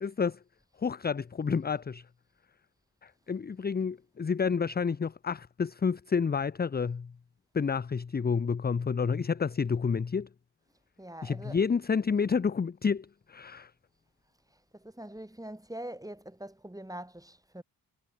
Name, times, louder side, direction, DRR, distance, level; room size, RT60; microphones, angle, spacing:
voice 1, 0.0-0.4 0.8-2.0 3.0-7.1 7.5-10.3 11.2-13.7, left 5 dB, 25° left, 0.6 m, -29 dB
voice 2, 11.0-11.6 14.7-17.6, right 1 dB, 10° right, 6.8 m, -43 dB
cardioid pair, 60°, 42 cm